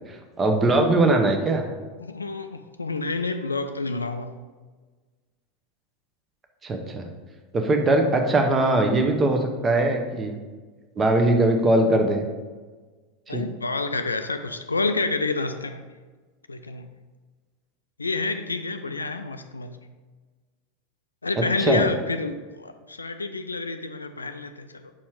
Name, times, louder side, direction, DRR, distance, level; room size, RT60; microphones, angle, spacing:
voice 1, 0.1-1.7 6.6-7.1 7.5-10.4 11.0-12.2 13.3-13.4 21.6-21.9, right 2 dB, 20° right, 4 dB, 0.9 m, -21 dB
voice 2, 2.0-4.3 13.3-15.8 16.5-16.9 18.0-19.8 21.2-24.9, left 3 dB, 80° left, 8 dB, 0.3 m, -29 dB
6.1 x 4.3 x 4.7 m, 1.4 s
figure-of-eight pair, 85°, 0 cm